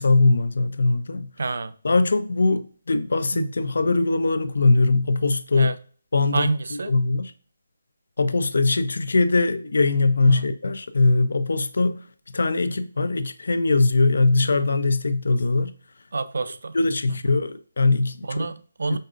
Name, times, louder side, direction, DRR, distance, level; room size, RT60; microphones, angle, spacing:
voice 1, 0.0-1.3 1.8-5.7 6.1-7.3 8.2-12.0 12.3-15.7 16.7-18.4, left 3 dB, 70° left, 0.4 m, -21 dB
voice 2, 1.4-1.7 3.3-3.5 5.5-5.8 6.3-6.9 10.3-10.5 16.1-16.8 18.2-19.0, right 3 dB, 70° right, 0.4 m, -27 dB
5.2 x 2.5 x 2.4 m
hypercardioid pair, 170°, 0 cm